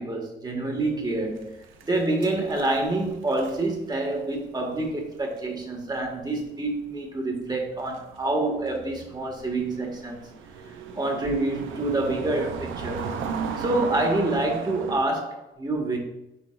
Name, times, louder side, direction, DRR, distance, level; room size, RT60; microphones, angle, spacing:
voice 1, 0.0-1.5 1.8-10.2 10.9-13.1 13.6-16.0, right 2 dB, 20° right, 1.7 m, -27 dB
sound 1, 0.8-6.4 6.7-6.9 7.6-15.0, right 6 dB, 85° right, 0.7 m, -37 dB
10.5 x 4.0 x 2.5 m
cardioid pair, 90°, 20 cm